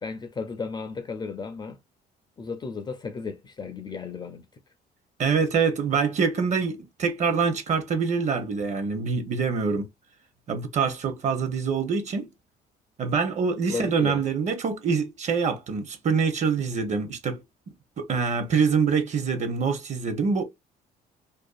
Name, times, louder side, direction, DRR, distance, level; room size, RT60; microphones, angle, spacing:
voice 1, 0.0-1.8 2.4-4.5 13.7-14.2, left 4 dB, 25° left, 0.4 m, -34 dB
voice 2, 5.2-9.9 10.5-12.3 13.0-17.4 18.0-20.4, right 5 dB, 45° right, 0.7 m, -25 dB
2.5 x 2.4 x 2.3 m
cardioid pair, 110°, 17 cm